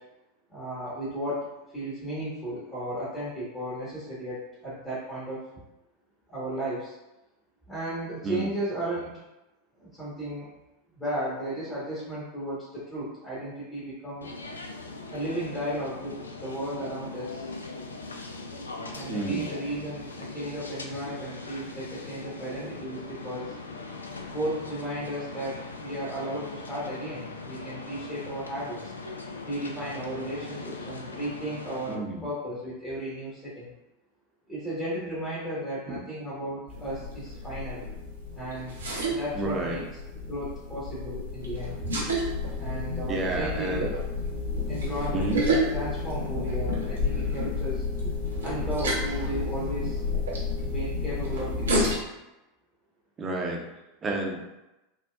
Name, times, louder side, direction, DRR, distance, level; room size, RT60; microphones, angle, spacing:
voice 1, 0.5-1.5 1.7-5.4 6.3-6.9 7.7-9.2 9.8-10.5 10.9-14.3 15.1-17.5 18.9-23.5 24.3-28.8 29.4-33.7 34.5-37.8 38.4-38.8 39.1-39.8 40.3-41.8 42.6-43.8 44.7-47.8 48.4-50.0 50.6-51.9, right 1 dB, 20° left, -9 dB, 1.3 m, -34 dB
sound 1, 14.2-31.9, left 3 dB, 85° left, 0.3 m, -40 dB
voice 2, 19.1-19.4 22.5-22.7 31.9-32.2 35.9-36.0 39.3-39.8 43.1-43.9 45.1-45.4 53.2-53.6 54.0-54.5, right 2 dB, 25° right, -1 dB, 0.7 m, -31 dB
sound 2, 36.7-52.0, left 1 dB, 80° right, 0.8 m, -30 dB
4.3 x 2.2 x 2.3 m, 0.97 s
figure-of-eight pair, 85°, 0 cm